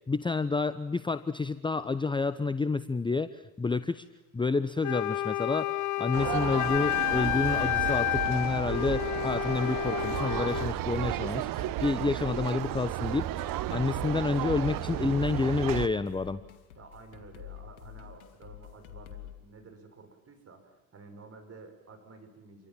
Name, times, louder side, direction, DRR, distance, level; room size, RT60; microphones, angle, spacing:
voice 1, 0.1-4.1 4.3-16.4, left 4 dB, 10° left, 14 dB, 0.8 m, -29 dB
Wind instrument woodwind instrument, 4.8-10.7, left 14 dB, 45° left, 0.9 m, -30 dB
sound 1, 6.1-15.9, right 15 dB, 50° right, 1.2 m, -33 dB
sound 2, 7.1-19.3, left 12 dB, 70° left, 2.5 m, -47 dB
voice 2, 16.8-22.7, right 4 dB, 35° right, 6 dB, 6.3 m, -51 dB
29.0 x 24.0 x 7.5 m, 1.1 s
hypercardioid pair, 65°, 43 cm